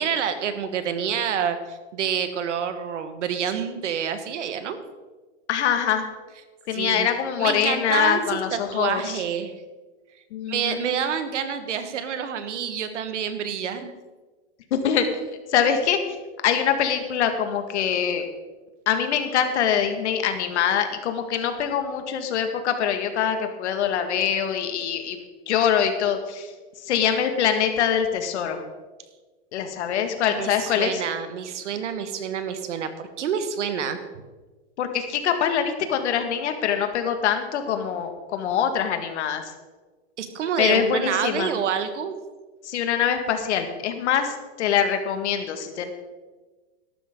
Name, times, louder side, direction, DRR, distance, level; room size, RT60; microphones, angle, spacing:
voice 1, 0.0-4.8 6.7-7.1 7.4-9.5 10.5-13.9 30.3-34.0 40.2-42.2, right 7 dB, 90° right, 9 dB, 1.6 m, -28 dB
voice 2, 5.5-6.0 6.7-9.2 10.3-10.9 14.7-15.1 15.5-16.2 16.4-18.2 18.9-26.5 26.8-28.6 29.5-31.0 34.8-39.4 40.6-41.5 42.6-45.9, left 8 dB, 75° left, 7 dB, 1.9 m, -24 dB
14.0 x 12.0 x 3.8 m, 1.3 s
supercardioid pair, 140°, 35 cm